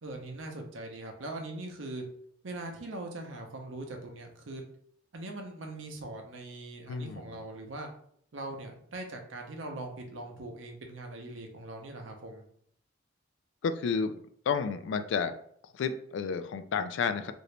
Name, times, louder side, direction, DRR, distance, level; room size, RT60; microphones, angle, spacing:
voice 1, 0.0-2.0 2.4-4.6 5.1-7.9 8.3-12.4, right 2 dB, 75° right, 3 dB, 0.6 m, -41 dB
voice 2, 6.9-7.4 13.6-14.2 14.5-15.3 15.7-17.3, left 5 dB, 65° left, 10 dB, 0.3 m, -31 dB
2.8 x 2.6 x 3.2 m, 0.65 s
head